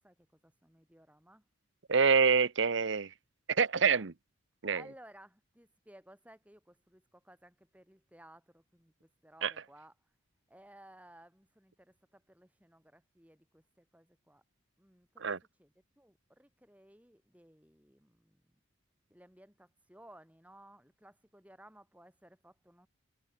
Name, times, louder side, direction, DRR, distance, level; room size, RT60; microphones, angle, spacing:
voice 1, 0.0-1.4 3.8-4.1 4.7-9.9 10.5-14.4 14.8-15.3 15.6-18.4 19.1-22.9, right 1 dB, 5° right, 6.1 m, -59 dB
voice 2, 1.9-3.1 3.5-4.1 4.6-4.8 9.4-9.5 15.2-15.4, right 5 dB, 60° right, 0.8 m, -26 dB
head